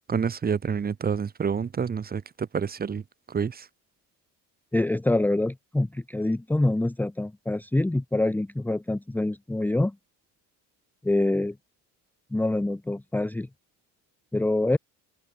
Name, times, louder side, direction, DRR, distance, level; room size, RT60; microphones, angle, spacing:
voice 1, 0.1-3.0 3.3-3.7, right 6 dB, 25° right, 2.7 m, -28 dB
voice 2, 4.7-9.9 11.0-11.6 12.3-13.5 14.3-14.8, left 2 dB, 5° left, 1.1 m, -25 dB
open air
cardioid pair, 160°, 38 cm